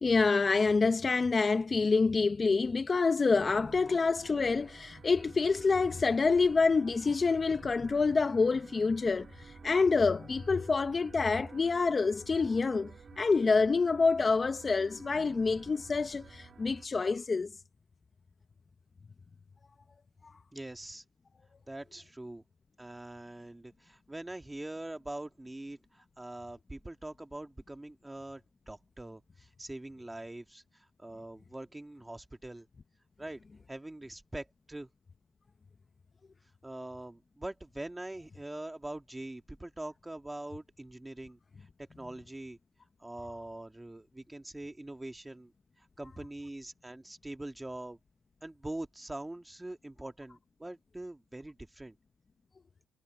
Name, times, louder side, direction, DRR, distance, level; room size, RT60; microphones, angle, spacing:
voice 1, 0.0-17.5 20.2-20.3, left 4 dB, 25° left, 0.8 m, -27 dB
sound 1, 3.4-16.9, right 5 dB, 35° right, 2.8 m, -53 dB
voice 2, 20.5-21.0 21.7-22.4 22.8-32.7 33.2-33.4 33.7-34.9 36.6-42.6 43.0-45.5 45.8-48.0 48.4-52.0, right 1 dB, 10° right, 2.3 m, -43 dB
cardioid pair, 95°, 0 cm